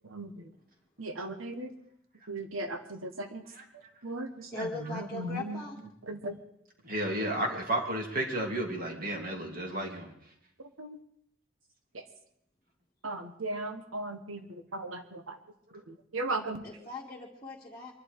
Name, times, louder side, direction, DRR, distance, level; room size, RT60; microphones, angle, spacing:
voice 1, 0.0-0.5 1.0-1.7 2.3-3.4 3.7-5.6 6.1-6.4 10.8-11.0 11.9-12.0 13.0-15.4 15.9-16.6, right 2 dB, 85° right, 7 dB, 1.5 m, -37 dB
voice 2, 4.5-5.8 16.6-17.9, left 2 dB, 15° left, -7 dB, 2.1 m, -40 dB
voice 3, 6.8-10.1, right 1 dB, 45° right, 2 dB, 2.9 m, -32 dB
23.5 x 11.5 x 4.9 m, 0.74 s
head